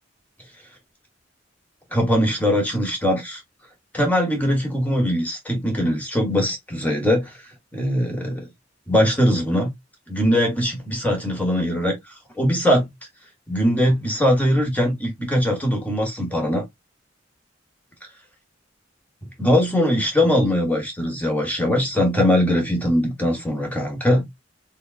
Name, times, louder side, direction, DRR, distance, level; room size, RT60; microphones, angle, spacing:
voice 1, 1.9-3.4 3.9-7.3 7.7-8.5 8.9-9.7 10.1-11.9 12.4-12.9 13.5-16.6 19.4-24.3, equal, 10° left, 1.4 m, -21 dB
3.7 x 3.5 x 2.4 m
head